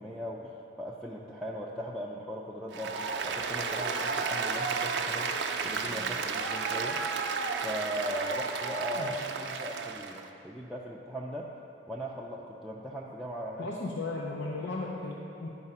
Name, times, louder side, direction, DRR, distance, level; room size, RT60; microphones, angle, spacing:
voice 1, 0.0-7.0 7.6-11.5 11.9-13.7, equal, ahead, -4 dB, 0.4 m, -39 dB
Applause, 2.7-10.2, right 5 dB, 75° right, 0.5 m, -32 dB
voice 2, 9.0-9.5 13.6-15.5, left 3 dB, 80° left, -2 dB, 0.6 m, -36 dB
9.9 x 4.8 x 5.5 m, 2.8 s
head